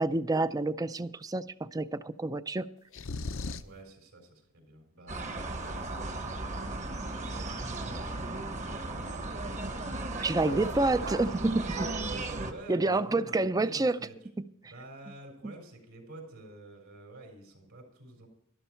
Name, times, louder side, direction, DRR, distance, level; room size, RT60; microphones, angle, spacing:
voice 1, 0.0-2.7 10.2-11.9 12.7-14.0 15.4-15.5, right 2 dB, 15° right, 14 dB, 0.4 m, -28 dB
sound 1, 2.9-3.8, left 3 dB, 65° left, 0.6 m, -36 dB
voice 2, 3.6-7.7 8.0-11.3 12.4-14.3 14.6-18.3, right 1 dB, 75° right, 3 dB, 4.2 m, -50 dB
sound 2, 5.1-12.5, right 2 dB, 35° right, 1.1 m, -36 dB
sound 3, 5.4-5.7 5.9-12.2, right 3 dB, 55° right, 2.2 m, -45 dB
12.5 x 12.0 x 4.4 m, 0.79 s
head